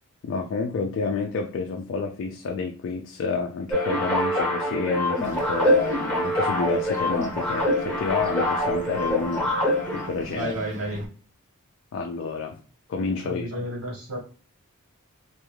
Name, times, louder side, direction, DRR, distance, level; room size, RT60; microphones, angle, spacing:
voice 1, 0.2-9.5 9.9-10.5 11.9-12.6 12.9-13.5, left 4 dB, 60° left, 0.3 m, -29 dB
sound 1, 3.7-10.1, left 1 dB, 5° left, 0.7 m, -25 dB
Bird, 5.2-11.1, right 2 dB, 35° right, 0.5 m, -41 dB
voice 2, 10.3-11.1 13.2-14.2, right 1 dB, 70° right, 1.3 m, -31 dB
2.4 x 2.3 x 3.1 m
head